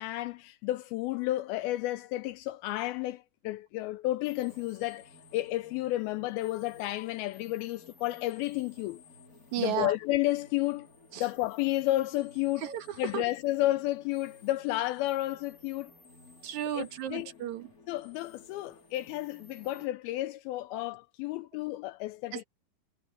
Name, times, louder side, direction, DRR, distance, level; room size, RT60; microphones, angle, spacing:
voice 1, 0.0-9.0 9.6-10.9 11.2-12.7 13.0-15.9 16.7-17.3 17.9-22.4, left 16 dB, 85° left, 2.2 m, -32 dB
sound 1, 4.2-19.9, left 3 dB, 25° left, 3.0 m, -56 dB
voice 2, 9.5-9.9 11.1-11.2 12.6-12.8 13.1-13.2 16.4-17.7 22.3-22.4, right 11 dB, 65° right, 2.1 m, -33 dB
omnidirectional pair, 4.9 m